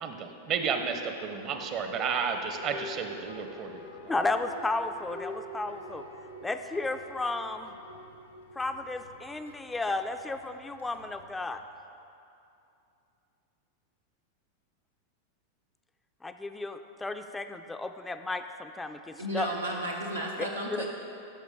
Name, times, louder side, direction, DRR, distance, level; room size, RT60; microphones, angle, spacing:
voice 1, 0.0-3.8, right 6 dB, 35° right, 6 dB, 0.6 m, -32 dB
sound 1, 1.4-11.6, left 1 dB, 75° left, 0.8 m, -46 dB
voice 2, 4.1-6.0 6.4-7.7 8.6-11.6 16.2-19.5 20.7-20.9, left 2 dB, 10° left, 8 dB, 0.3 m, -33 dB
voice 3, 19.2-20.9, right 1 dB, 85° right, -3 dB, 0.7 m, -33 dB
10.0 x 6.2 x 3.5 m, 2.7 s
figure-of-eight pair, 90°, 0 cm